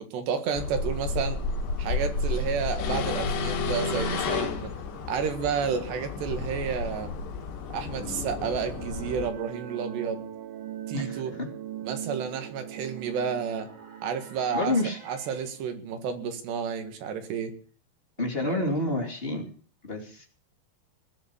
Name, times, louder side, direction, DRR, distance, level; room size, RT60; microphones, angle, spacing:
voice 1, 0.1-1.4 1.8-4.7 5.1-7.2 7.7-10.2 10.9-11.3 11.8-13.7 14.0-14.8 15.1-17.5 18.4-18.7, right 6 dB, 85° right, 7 dB, 4.0 m, -31 dB
sound 1, 0.5-9.3, left 4 dB, 80° left, 4.1 m, -31 dB
sound 2, 7.8-16.3, right 10 dB, 70° right, 2.0 m, -41 dB
sound 3, 10.5-15.9, right 1 dB, 45° right, 4.4 m, -54 dB
voice 2, 10.9-11.5 14.5-15.0 18.2-19.5 19.8-20.3, left 2 dB, 20° left, 2 dB, 2.1 m, -29 dB
19.5 x 7.2 x 8.5 m, 0.43 s
omnidirectional pair, 4.7 m